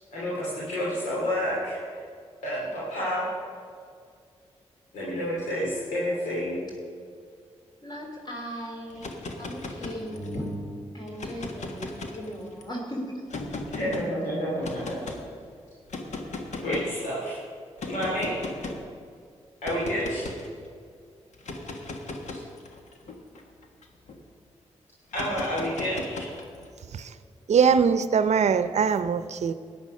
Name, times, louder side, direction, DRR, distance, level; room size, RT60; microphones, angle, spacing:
voice 1, 0.1-1.8 2.4-3.3 4.9-6.6 13.7-15.1 16.6-17.4 17.9-18.4 19.6-20.2 22.3-22.4 25.1-26.3, equal, 90° left, 2.8 m, -29 dB
voice 2, 7.8-9.1 9.4-13.2, equal, 35° left, 3.0 m, -37 dB
sound 1, 8.9-10.5 11.1-12.6 13.3-14.1 14.6-15.2 15.9-17.0 17.8-18.9 19.6-20.5 21.3-24.2 25.1-26.7, left 2 dB, 70° left, 1.5 m, -37 dB
voice 3, 27.5-29.5, right 6 dB, 65° right, 0.6 m, -22 dB
13.5 x 9.6 x 5.4 m
supercardioid pair, 45°, 12 cm